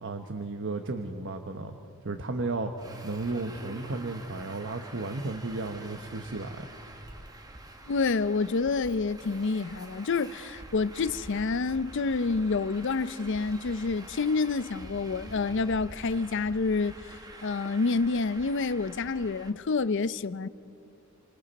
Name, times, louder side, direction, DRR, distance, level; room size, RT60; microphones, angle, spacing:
voice 1, 0.0-1.7 2.0-6.7, right 3 dB, 65° right, 1.0 m, -34 dB
Traffic noise roadway noise, 2.8-19.5, right 1 dB, 20° right, 1.2 m, -47 dB
voice 2, 7.9-17.0 17.4-20.5, left 4 dB, 60° left, 0.6 m, -28 dB
29.5 x 25.0 x 4.2 m
head